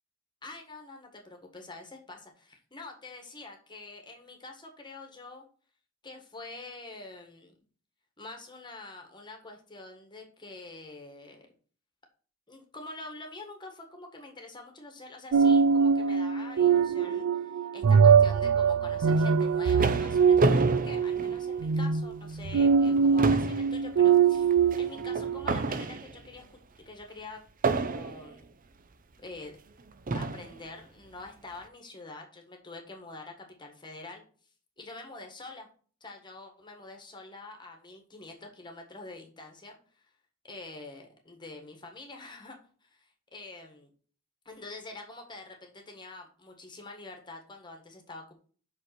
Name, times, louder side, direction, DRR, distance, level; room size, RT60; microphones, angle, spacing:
voice 1, 0.4-5.4 6.0-7.6 8.2-11.5 12.5-24.5 24.8-26.6 26.8-27.4 27.7-28.6 29.2-29.6 30.1-34.2 34.8-35.7 36.0-40.1 40.4-42.6 42.8-43.9 44.4-48.3, left 2 dB, 20° left, 3 dB, 1.6 m, -46 dB
sound 1, 15.3-25.6, right 6 dB, 90° right, 0.4 m, -23 dB
sound 2, 19.2-21.9 22.4-22.5 22.8-26.4 27.6-28.4 29.3-29.4 30.1-30.6, right 3 dB, 40° right, 0.7 m, -30 dB
5.9 x 5.6 x 5.9 m, 0.42 s
head